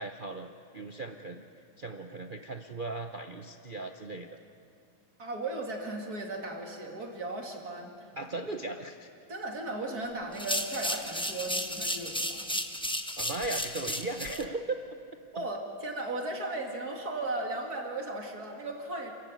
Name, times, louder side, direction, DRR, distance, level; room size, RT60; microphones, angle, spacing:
voice 1, 0.0-1.4 1.8-4.3 8.2-9.1 13.2-14.8, right 2 dB, 80° right, 5 dB, 0.4 m, -37 dB
voice 2, 5.2-8.1 9.3-12.4 15.3-19.1, right 2 dB, 50° right, 1 dB, 3.0 m, -36 dB
sound 1, 10.3-14.4, left 1 dB, 5° left, 0.4 m, -33 dB
28.0 x 14.5 x 9.1 m, 2.4 s
omnidirectional pair, 2.2 m